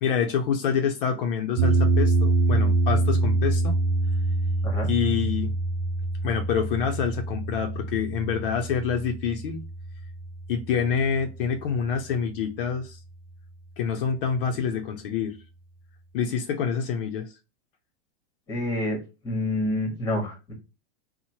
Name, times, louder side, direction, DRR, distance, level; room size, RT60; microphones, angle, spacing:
voice 1, 0.0-3.8 4.9-5.5 6.2-9.6 10.5-13.0 13.8-15.4 16.1-17.3, left 7 dB, 55° left, 4 dB, 0.5 m, -27 dB
sound 1, 1.6-11.8, right 2 dB, 55° right, 0.4 m, -25 dB
voice 2, 18.5-20.5, left 1 dB, 10° left, 2 dB, 0.9 m, -28 dB
3.0 x 2.0 x 2.7 m, 0.30 s
supercardioid pair, 160°, 33 cm